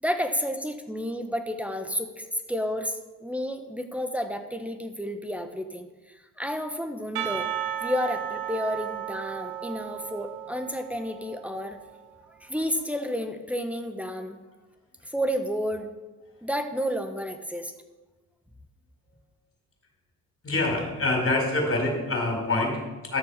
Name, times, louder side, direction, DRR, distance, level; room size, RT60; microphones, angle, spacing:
voice 1, 0.0-7.5 7.8-11.8 12.4-14.4 15.0-15.9 16.4-17.7, equal, 5° right, 5 dB, 1.2 m, -31 dB
Percussion / Church bell, 7.2-11.7, right 10 dB, 75° right, 1.1 m, -34 dB
voice 2, 20.4-23.2, left 2 dB, 35° left, 1 dB, 4.6 m, -26 dB
13.5 x 6.8 x 5.7 m, 1.2 s
supercardioid pair, 70°, 36 cm